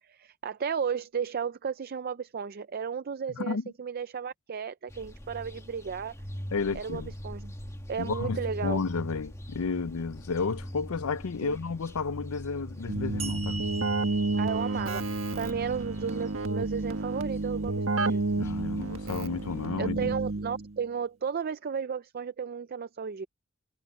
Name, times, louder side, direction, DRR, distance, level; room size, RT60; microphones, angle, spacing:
voice 1, 0.0-6.2 6.7-7.5 7.9-8.8 11.4-11.6 14.4-18.2 19.8-23.3, right 6 dB, 45° right, 0.5 m, -34 dB
voice 2, 3.3-3.7 6.5-7.1 8.0-13.6 18.4-20.1, left 4 dB, 90° left, 0.6 m, -32 dB
sound 1, 4.9-19.7, equal, 15° left, 1.5 m, -43 dB
Keyboard (musical), 12.9-20.8, right 2 dB, 70° right, 1.6 m, -30 dB
sound 2, 13.2-16.6, right 4 dB, 30° right, 1.2 m, -42 dB
head